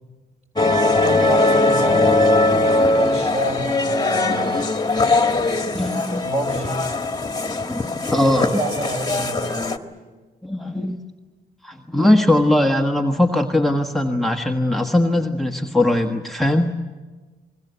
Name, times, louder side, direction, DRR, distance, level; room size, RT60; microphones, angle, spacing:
sound 1, 0.6-9.8, left 2 dB, 20° left, 1.8 m, -20 dB
voice 1, 0.8-4.6 6.2-6.9 8.1-9.5, right 1 dB, 35° right, 3 dB, 6.4 m, -28 dB
voice 2, 5.6-6.2 7.7-8.5 10.4-11.0 11.6-16.8, left 1 dB, ahead, 4 dB, 1.4 m, -20 dB
28.0 x 21.5 x 8.2 m, 1.4 s
cardioid pair, 90°, 20 cm